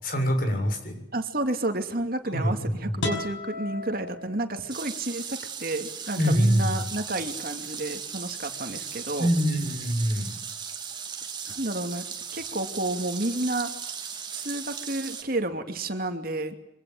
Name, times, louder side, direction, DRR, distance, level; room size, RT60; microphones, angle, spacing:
voice 1, 0.0-1.0 2.3-2.9 6.2-6.8 9.2-10.3, equal, 50° left, 5 dB, 7.0 m, -24 dB
voice 2, 1.1-9.3 11.4-12.0 12.3-13.7 14.3-16.5, right 2 dB, 50° right, 6 dB, 2.6 m, -31 dB
sound 1, 3.0-4.9, left 2 dB, 85° left, 6.3 m, -34 dB
sound 2, 4.7-15.2, right 7 dB, 25° right, 3.0 m, -37 dB
25.5 x 25.0 x 7.9 m, 0.81 s
head